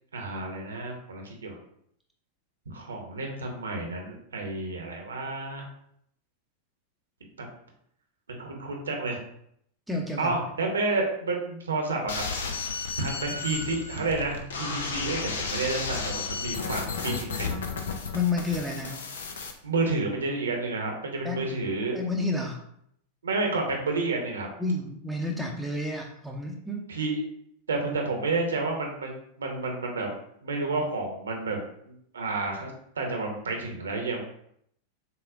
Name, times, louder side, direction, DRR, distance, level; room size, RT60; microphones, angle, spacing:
voice 1, 0.1-1.6 2.7-5.6 8.3-9.2 10.2-12.2 13.0-17.5 19.6-22.0 23.2-24.5 26.9-27.2 27.7-29.1 29.4-30.1 30.4-31.6 31.9-32.7 33.0-34.2, right 3 dB, 70° right, 2 dB, 0.9 m, -30 dB
voice 2, 9.9-10.3 18.1-19.1 21.2-21.4 21.9-22.6 24.6-26.8, left 3 dB, ahead, -1 dB, 0.7 m, -30 dB
sound 1, 12.1-19.5, left 5 dB, 65° left, 0.6 m, -33 dB
6.9 x 2.5 x 2.5 m, 0.70 s
figure-of-eight pair, 90°, 0 cm